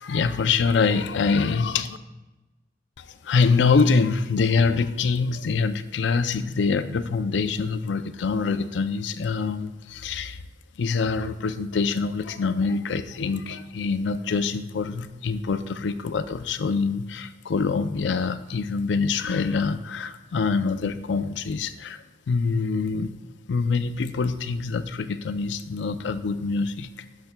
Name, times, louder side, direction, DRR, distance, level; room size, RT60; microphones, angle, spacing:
voice 1, 0.0-2.0 3.0-10.4 10.8-23.1 23.5-26.9, left 4 dB, 85° left, 12 dB, 0.4 m, -25 dB
12.0 x 5.7 x 2.2 m, 1.1 s
head